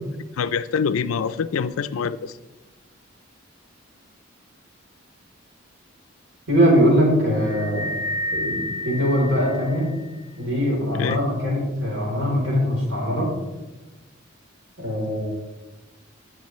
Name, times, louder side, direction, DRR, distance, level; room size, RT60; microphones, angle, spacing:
voice 1, 0.4-2.4 10.9-11.2, left 6 dB, 85° left, 13 dB, 0.4 m, -25 dB
voice 2, 6.5-8.0 8.3-9.9 10.4-13.3 14.8-15.3, equal, 65° right, -3 dB, 3.6 m, -21 dB
sound 1, 7.4-10.1, left 1 dB, 20° right, 1.7 m, -30 dB
15.5 x 5.9 x 3.1 m, 1.1 s
head